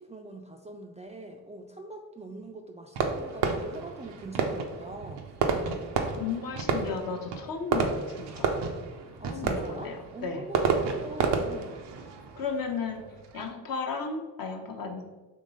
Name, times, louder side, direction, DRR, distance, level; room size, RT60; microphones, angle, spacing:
voice 1, 0.0-5.3 9.2-11.8, right 2 dB, 15° right, 2 dB, 0.4 m, -43 dB
Fireworks, 2.9-13.5, right 5 dB, 75° right, 0.6 m, -31 dB
voice 2, 6.2-8.5 9.3-10.4 12.4-13.0 13.3-15.1, left 5 dB, 55° left, 3 dB, 0.8 m, -34 dB
3.7 x 3.0 x 4.0 m, 1.2 s
supercardioid pair, 45°, 42 cm